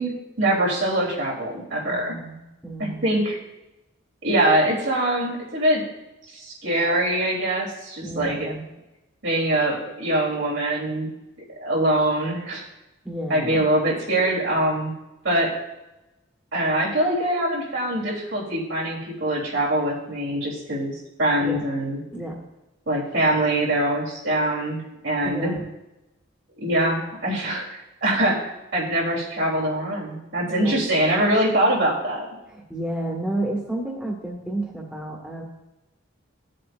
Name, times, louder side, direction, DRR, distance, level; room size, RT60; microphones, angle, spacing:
voice 1, 0.0-2.1 2.8-3.4 4.2-5.8 6.3-8.5 9.2-11.1 11.6-12.6 13.3-15.0 15.2-15.5 16.5-20.9 21.2-22.0 22.9-25.5 26.6-32.3, right 1 dB, 75° right, -5 dB, 3.4 m, -23 dB
voice 2, 1.9-3.1 8.0-8.7 13.0-13.7 21.4-21.6 22.1-22.4 25.2-25.6 30.6-30.9 32.5-35.4, right 1 dB, 5° right, -3 dB, 1.4 m, -31 dB
16.5 x 7.6 x 2.6 m, 0.99 s
head